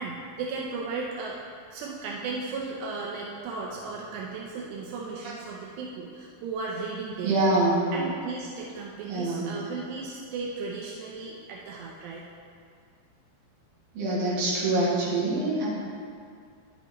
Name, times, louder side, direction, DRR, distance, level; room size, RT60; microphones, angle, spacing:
voice 1, 0.0-1.4 1.7-7.4 7.9-12.3, right 4 dB, 85° right, -3 dB, 2.9 m, -35 dB
voice 2, 7.2-7.8 9.1-9.5 13.9-15.7, right 2 dB, 60° right, -8 dB, 3.6 m, -25 dB
10.0 x 8.1 x 3.0 m, 2.3 s
omnidirectional pair, 4.8 m